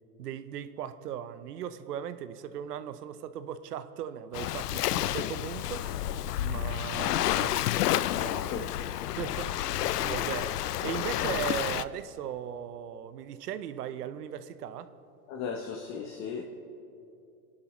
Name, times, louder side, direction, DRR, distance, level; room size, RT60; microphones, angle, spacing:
voice 1, 0.2-8.7 9.2-14.9, right 10 dB, 85° right, 12 dB, 0.9 m, -38 dB
Waves surf, 4.3-11.8, left 13 dB, 90° left, 0.6 m, -30 dB
voice 2, 15.3-16.4, left 6 dB, 35° left, 1 dB, 1.1 m, -36 dB
30.0 x 11.5 x 3.2 m, 2.8 s
hypercardioid pair, 125°, 46 cm